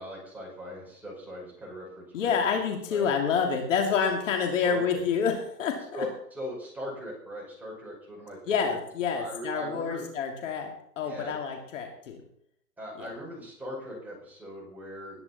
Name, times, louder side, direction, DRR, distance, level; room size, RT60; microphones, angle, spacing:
voice 1, 0.0-2.3 2.9-3.1 4.6-5.0 5.9-8.8 9.1-10.0 11.0-11.3 12.8-15.2, equal, 5° right, -4 dB, 5.3 m, -39 dB
voice 2, 2.1-6.1 8.5-12.2 13.0-13.1, left 6 dB, 50° left, 2 dB, 2.8 m, -28 dB
20.0 x 9.9 x 4.3 m, 0.68 s
hypercardioid pair, 155°, 49 cm